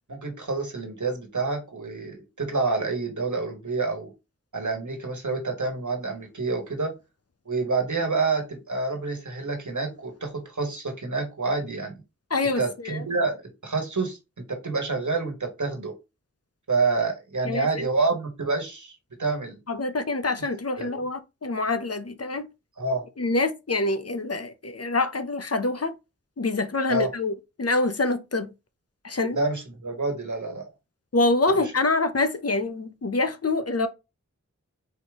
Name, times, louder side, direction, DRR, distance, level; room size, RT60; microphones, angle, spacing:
voice 1, 0.1-4.1 4.5-6.9 7.4-11.9 12.6-14.2 14.5-15.9 16.7-18.9 19.2-19.6 20.8-21.0 22.8-23.0 26.9-27.1 29.3-30.6, right 3 dB, 85° right, 1.3 m, -28 dB
voice 2, 12.3-13.0 17.4-17.7 19.7-22.5 23.2-25.9 26.4-27.3 27.6-28.5 29.0-29.4 31.1-33.9, left 2 dB, 55° left, 0.7 m, -25 dB
4.3 x 3.5 x 3.5 m
wide cardioid pair, 45°, 29 cm